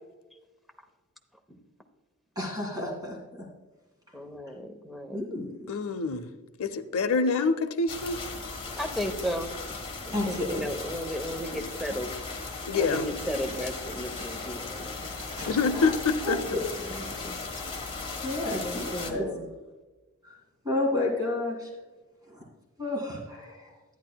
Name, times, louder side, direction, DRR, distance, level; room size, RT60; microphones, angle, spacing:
voice 1, 2.4-3.2 5.1-5.5 10.1-10.7 15.4-16.0 16.2-17.1 18.2-19.4 20.2-20.4 20.6-21.7 22.3-22.4 22.8-23.7, left 2 dB, 20° right, -1 dB, 2.0 m, -31 dB
voice 2, 4.1-5.2 8.8-9.5 10.1-12.1 12.8-15.2 16.8-17.4 18.5-19.5, equal, ahead, 4 dB, 0.8 m, -35 dB
voice 3, 5.7-6.3 6.6-8.2 12.7-13.1 15.5-16.4, left 4 dB, 70° left, 10 dB, 0.6 m, -26 dB
sound 1, 7.9-19.1, left 3 dB, 25° left, 1.3 m, -37 dB
11.5 x 9.8 x 2.3 m, 1.2 s
head